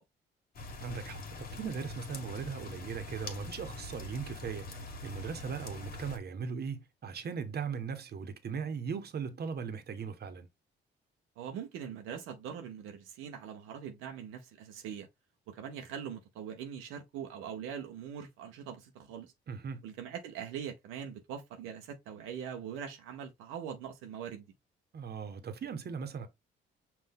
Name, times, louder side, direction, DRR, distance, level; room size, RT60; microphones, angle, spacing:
sound 1, 0.5-6.2, left 2 dB, 45° left, 1.5 m, -44 dB
voice 1, 0.8-10.5 19.5-19.8 24.9-26.3, right 6 dB, 50° right, 1.1 m, -39 dB
voice 2, 11.4-15.1 15.5-19.3 19.8-24.5, right 8 dB, 90° right, 0.8 m, -42 dB
5.5 x 2.6 x 3.6 m
supercardioid pair, 65°, 21 cm